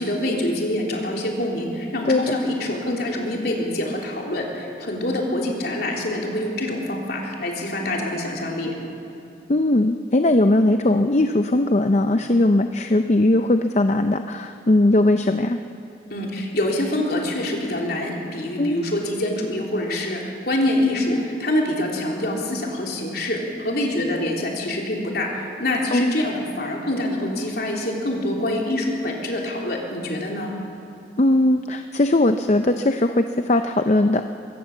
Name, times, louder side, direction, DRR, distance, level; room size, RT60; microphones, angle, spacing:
voice 1, 0.0-8.7 16.1-30.5, left 1 dB, 55° left, -1 dB, 3.5 m, -25 dB
voice 2, 2.0-2.4 9.5-15.6 18.6-18.8 25.9-26.1 31.2-34.2, left 1 dB, 35° left, 7 dB, 0.6 m, -19 dB
24.0 x 17.0 x 7.3 m, 2.8 s
head